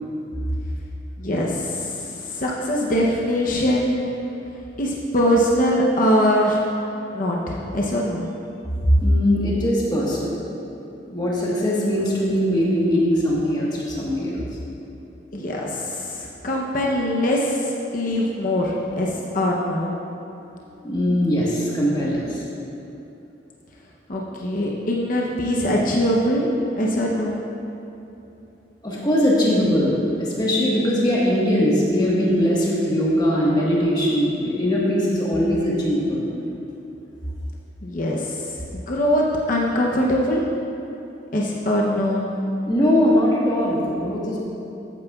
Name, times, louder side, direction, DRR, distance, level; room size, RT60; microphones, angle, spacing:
voice 1, 1.2-4.1 4.8-6.6 7.1-8.2 15.3-19.9 24.1-27.4 37.8-38.5 38.9-40.4 41.3-42.3, equal, 45° left, -2 dB, 0.8 m, -22 dB
voice 2, 8.8-10.4 11.1-14.5 20.4-22.4 28.8-36.3 42.7-44.4, equal, 25° left, -5 dB, 1.4 m, -21 dB
13.5 x 9.1 x 2.4 m, 2.8 s
head